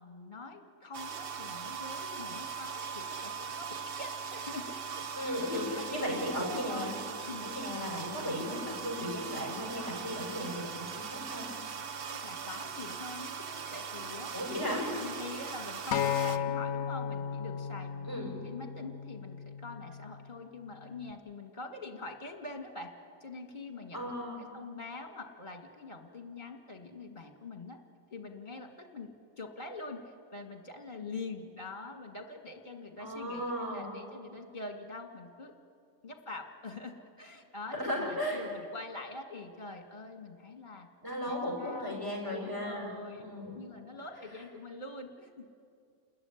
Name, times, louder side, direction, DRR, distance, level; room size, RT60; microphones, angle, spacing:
voice 1, 0.0-6.3 6.7-7.0 7.3-7.4 12.1-14.3 15.0-18.1 18.4-22.9 23.2-24.1 24.4-27.8 28.1-35.5 36.0-40.9 41.3-42.0 42.3-45.5, left 3 dB, 35° left, 4 dB, 2.1 m, -44 dB
sound 1, 0.9-16.4, right 6 dB, 50° right, 0.9 m, -40 dB
voice 2, 5.1-7.0 7.4-11.5 14.3-14.9 18.0-18.4 23.9-24.4 33.0-34.0 37.7-38.4 41.0-42.9 43.2-43.6, equal, 15° right, -1 dB, 5.8 m, -36 dB
Acoustic guitar, 15.9-20.2 21.0-21.1, left 8 dB, 65° left, 1.1 m, -35 dB
29.5 x 14.0 x 9.8 m, 2.4 s
omnidirectional pair, 1.4 m